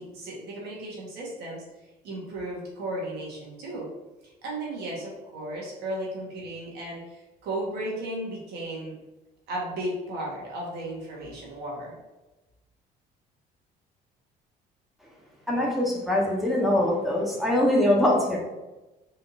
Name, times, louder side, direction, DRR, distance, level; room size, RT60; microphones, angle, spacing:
voice 1, 0.0-1.6 2.0-3.9 4.4-8.9 9.5-11.9, right 1 dB, 80° right, -4 dB, 1.4 m, -35 dB
voice 2, 15.5-18.4, left 1 dB, ahead, -3 dB, 1.1 m, -23 dB
4.2 x 3.7 x 2.6 m, 1.1 s
cardioid pair, 110°, 17 cm